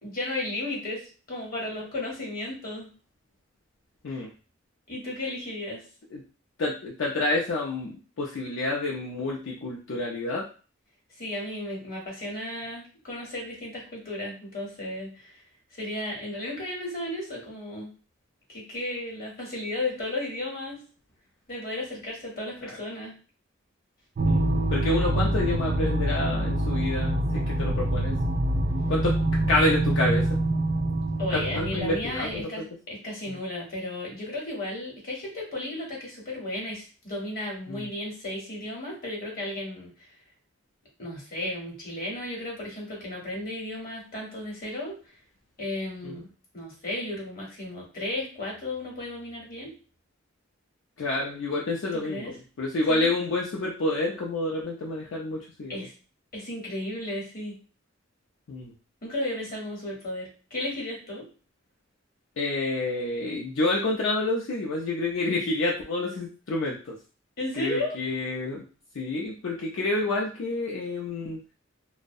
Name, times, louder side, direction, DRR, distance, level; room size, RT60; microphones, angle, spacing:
voice 1, 0.0-1.0 1.3-2.9 4.1-4.2 4.9-5.8 11.2-15.3 15.7-17.9 18.5-20.8 21.5-23.1 31.2-39.9 41.0-45.0 45.6-46.3 46.5-49.7 51.9-52.4 52.9-53.1 55.7-55.9 56.3-57.6 59.0-61.3 67.4-68.0, left 1 dB, 50° left, -2 dB, 0.9 m, -34 dB
voice 2, 6.6-10.5 24.3-28.1 28.9-29.1 29.5-30.4 31.3-32.7 33.3-33.4 37.7-37.8 46.0-46.2 51.0-55.9 58.5-58.7 62.4-67.0 67.6-68.6 69.0-71.4, left 2 dB, 70° left, -3 dB, 0.4 m, -28 dB
sound 1, 24.2-32.4, right 1 dB, 45° right, 0.3 m, -26 dB
2.3 x 2.0 x 2.6 m, 0.36 s
head